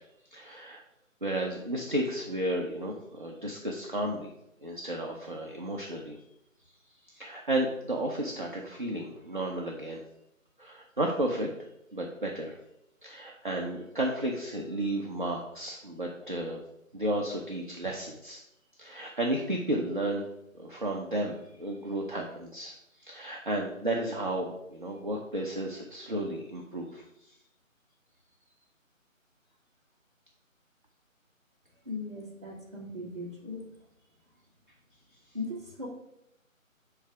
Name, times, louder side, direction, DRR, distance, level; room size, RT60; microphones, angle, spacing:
voice 1, 0.3-0.8 1.2-4.3 4.6-6.2 7.1-10.0 10.6-11.5 11.9-12.6 13.0-16.6 16.9-18.4 18.8-20.2 20.5-22.7 23.0-27.0, right 1 dB, 40° right, -1 dB, 0.6 m, -33 dB
voice 2, 31.8-33.6 35.3-35.9, left 2 dB, 20° right, -5 dB, 1.0 m, -38 dB
7.4 x 3.2 x 4.8 m, 0.82 s
figure-of-eight pair, 155°, 41 cm